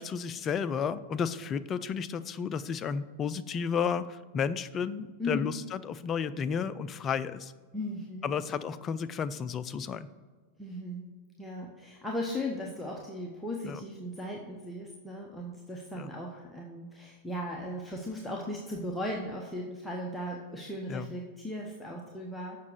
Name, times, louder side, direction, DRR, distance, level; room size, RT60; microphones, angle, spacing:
voice 1, 0.0-7.5 8.2-10.1 13.6-13.8 15.9-16.1 20.9-21.0, left 6 dB, 25° left, 13 dB, 0.4 m, -32 dB
voice 2, 5.2-5.5 7.7-8.6 10.6-11.0 11.4-22.6, left 1 dB, 5° left, -2 dB, 1.0 m, -37 dB
7.2 x 5.9 x 6.5 m, 1.4 s
figure-of-eight pair, 90°, 0 cm